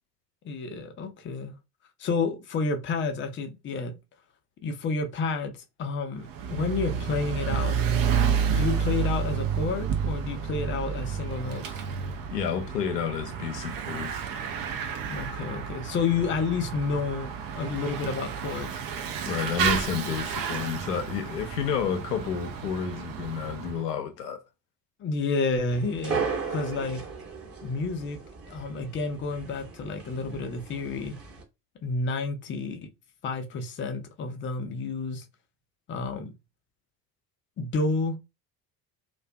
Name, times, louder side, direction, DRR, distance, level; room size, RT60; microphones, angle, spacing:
voice 1, 0.4-1.5 2.0-4.0 4.6-5.5 5.8-7.8 8.6-11.8 15.1-18.7 25.0-26.2 26.5-27.0 27.6-28.2 28.5-31.2 31.8-32.9 33.2-35.3 35.9-36.3 37.6-38.2, left 4 dB, 25° left, 0.5 m, -30 dB
Bicycle / Mechanisms, 6.2-23.8, right 7 dB, 45° right, 0.6 m, -30 dB
voice 2, 12.3-14.3 19.2-24.4, left 7 dB, 80° left, 0.6 m, -30 dB
sound 1, 25.7-31.4, right 5 dB, 30° right, 1.1 m, -36 dB
2.4 x 2.3 x 2.2 m
figure-of-eight pair, 55°, 48 cm